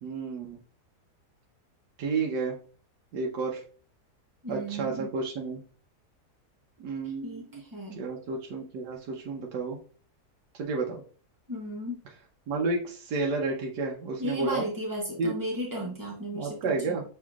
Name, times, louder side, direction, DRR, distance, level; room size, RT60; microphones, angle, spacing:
voice 1, 0.0-0.6 2.0-2.6 3.1-3.6 4.5-5.6 6.8-7.6 7.9-9.8 10.5-11.0 12.5-14.7 15.2-15.3 16.3-17.0, right 4 dB, 80° right, 0 dB, 1.4 m, -31 dB
voice 2, 4.4-5.1 7.0-8.0 11.5-12.0 14.2-17.0, equal, 25° right, -2 dB, 0.4 m, -35 dB
6.2 x 3.6 x 2.4 m, 0.41 s
omnidirectional pair, 1.7 m